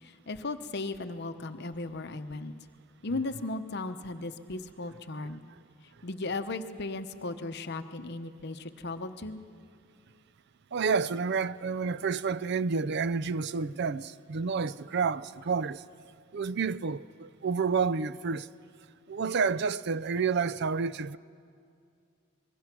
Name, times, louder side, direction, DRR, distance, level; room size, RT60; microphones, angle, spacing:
voice 1, 0.0-2.5 3.0-5.5 6.0-9.4, left 2 dB, 55° left, 0.9 m, -36 dB
voice 2, 10.7-15.8 16.3-18.5 19.1-21.2, right 5 dB, 55° right, 0.5 m, -29 dB
26.0 x 21.5 x 6.1 m
head